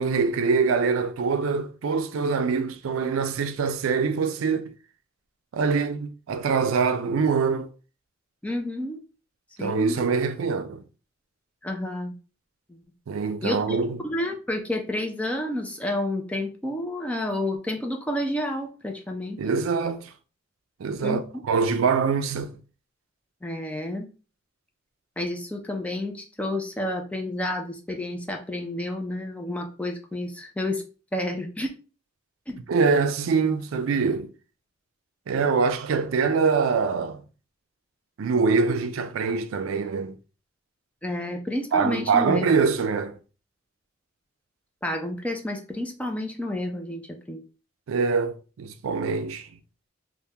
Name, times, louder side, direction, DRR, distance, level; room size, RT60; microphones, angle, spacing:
voice 1, 0.0-4.7 5.5-7.7 9.6-10.8 13.1-14.0 19.4-20.1 20.8-22.6 32.7-34.3 35.3-37.2 38.2-40.2 41.7-43.2 47.9-49.5, right 5 dB, 85° right, 0.4 m, -24 dB
voice 2, 8.4-9.0 9.6-10.0 11.6-12.1 13.4-13.6 14.0-19.4 21.0-21.2 23.4-24.1 25.2-30.8 31.1-31.7 32.5-32.6 41.0-42.5 44.8-47.4, left 1 dB, 5° left, 0.4 m, -30 dB
3.3 x 2.1 x 2.8 m
head